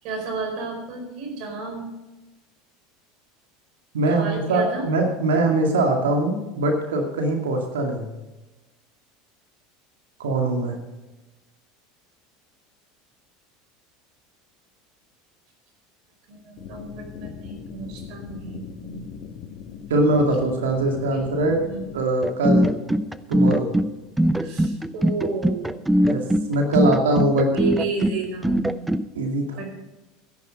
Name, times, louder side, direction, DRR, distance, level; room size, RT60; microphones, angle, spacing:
voice 1, 0.0-1.9 4.1-4.9 16.3-19.2 21.1-21.3 21.7-21.9 24.4-25.8 26.9-27.0 27.5-28.9 29.6-29.7, right 4 dB, 60° right, 4 dB, 4.8 m, -32 dB
voice 2, 3.9-8.1 10.2-10.8 19.9-21.6 21.9-22.7 23.3-23.7 26.1-27.5 29.1-29.6, right 2 dB, 85° right, 3 dB, 2.1 m, -22 dB
sound 1, 16.6-22.0, left 7 dB, 60° left, 1.6 m, -39 dB
sound 2, 22.2-29.1, equal, 5° right, 0.7 m, -21 dB
13.5 x 10.5 x 5.2 m, 1.1 s
hypercardioid pair, 90°, 0 cm